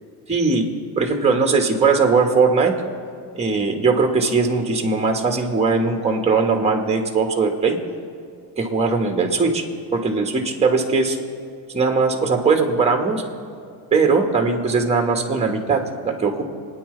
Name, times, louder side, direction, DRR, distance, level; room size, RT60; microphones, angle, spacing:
voice 1, 0.3-0.6 1.0-2.7 3.3-7.8 8.6-9.6 9.9-11.2 11.7-13.2 13.9-16.5, right 4 dB, 15° right, 3 dB, 1.7 m, -19 dB
27.5 x 9.7 x 3.4 m, 2.2 s
supercardioid pair, 105°, 43 cm